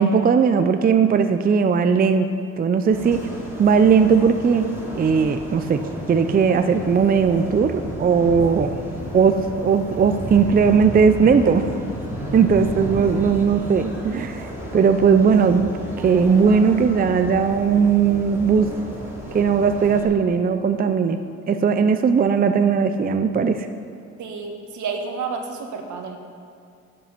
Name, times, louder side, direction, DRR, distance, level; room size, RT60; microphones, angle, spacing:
voice 1, 0.0-2.3 2.6-3.2 3.6-4.7 4.9-5.8 6.1-8.7 9.1-11.7 12.3-15.7 16.0-18.7 19.3-21.2 21.5-23.7, right 6 dB, 30° right, 8 dB, 0.5 m, -18 dB
sound 1, 2.9-20.0, equal, 10° right, 2.7 m, -33 dB
voice 2, 24.2-26.2, right 5 dB, 75° right, 4 dB, 1.4 m, -30 dB
10.5 x 7.7 x 5.9 m, 2.3 s
cardioid pair, 90°, 30 cm